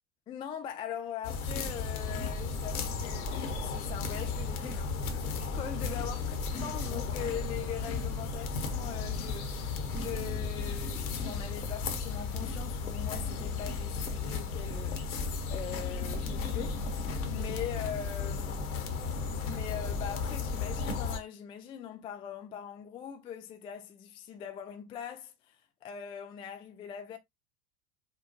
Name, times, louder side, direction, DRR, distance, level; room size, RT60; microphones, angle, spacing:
voice 1, 0.3-6.3 6.6-15.2 15.5-18.8 19.4-27.2, left 9 dB, 15° left, 0.3 m, -42 dB
sound 1, 1.2-21.2, left 4 dB, 70° left, 1.1 m, -34 dB
5.6 x 2.2 x 2.7 m
figure-of-eight pair, 75°, 44 cm